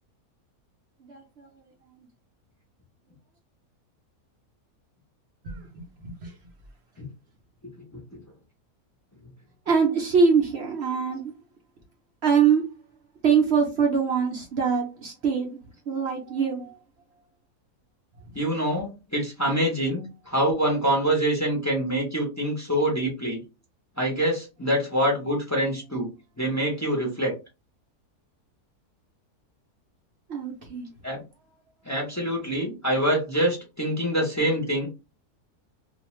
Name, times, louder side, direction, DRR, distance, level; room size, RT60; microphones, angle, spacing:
voice 1, 1.0-1.7 5.4-6.3 9.7-11.3 12.2-12.6 13.2-15.6 15.9-16.8 30.3-30.9, right 6 dB, 65° right, 0.6 m, -24 dB
voice 2, 18.3-23.4 24.0-26.1 26.4-27.3 31.0-31.2 31.9-34.9, right 1 dB, 20° left, 0.4 m, -25 dB
2.4 x 2.3 x 3.0 m
omnidirectional pair, 1.7 m